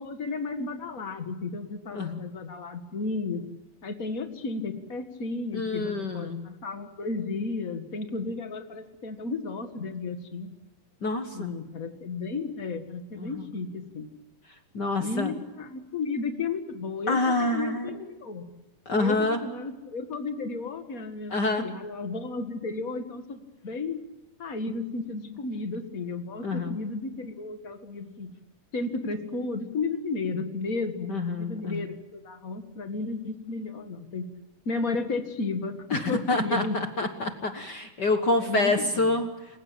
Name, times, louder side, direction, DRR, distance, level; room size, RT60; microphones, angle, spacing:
voice 1, 0.0-3.4 3.8-10.5 11.3-14.1 15.0-18.5 18.9-24.0 24.4-28.3 28.7-34.3 34.6-37.1 38.4-39.1, left 3 dB, 35° left, 7 dB, 1.5 m, -33 dB
voice 2, 5.5-6.4 11.0-11.5 13.2-13.5 14.7-15.3 17.1-17.9 18.9-19.4 21.3-21.6 26.4-26.7 31.1-31.8 35.9-39.3, left 2 dB, 55° left, 6 dB, 1.1 m, -27 dB
28.5 x 16.5 x 8.6 m, 1.1 s
omnidirectional pair, 4.0 m